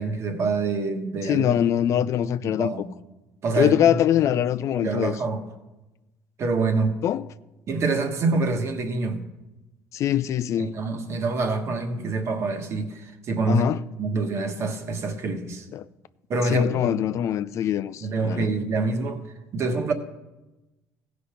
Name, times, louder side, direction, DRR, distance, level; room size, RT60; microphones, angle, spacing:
voice 1, 0.0-1.6 2.4-2.8 3.4-4.0 4.7-5.4 6.4-7.0 7.7-9.2 10.6-13.7 14.0-15.7 16.3-17.0 18.0-19.2 19.5-19.9, right 3 dB, 45° right, 1.3 m, -26 dB
voice 2, 1.2-2.7 3.6-5.1 7.0-7.3 9.9-10.7 13.5-13.8 15.7-15.9 16.5-18.5, left 10 dB, 55° left, 0.3 m, -23 dB
15.0 x 5.2 x 5.8 m
cardioid pair, 105°, 6 cm